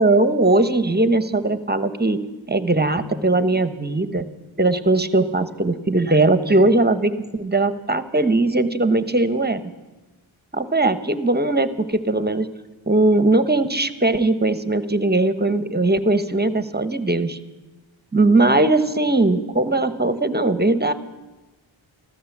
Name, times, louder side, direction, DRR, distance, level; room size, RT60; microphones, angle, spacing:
voice 1, 0.0-2.2 2.5-4.3 4.6-9.6 10.5-12.5 12.9-17.4 18.1-20.9, right 2 dB, 20° right, 12 dB, 1.1 m, -19 dB
14.0 x 14.0 x 7.2 m, 1.1 s
cardioid pair, 45°, 48 cm